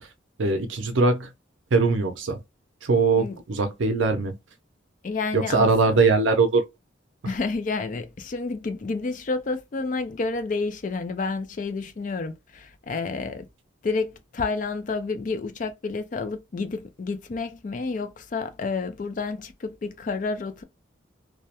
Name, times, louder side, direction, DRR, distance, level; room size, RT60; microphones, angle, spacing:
voice 1, 0.4-1.3 1.7-2.4 2.8-4.4 5.3-6.6, right 3 dB, 75° right, 0.5 m, -21 dB
voice 2, 5.0-6.0 7.3-13.5 13.8-20.6, left 4 dB, 40° left, 0.4 m, -30 dB
2.3 x 2.0 x 2.7 m
head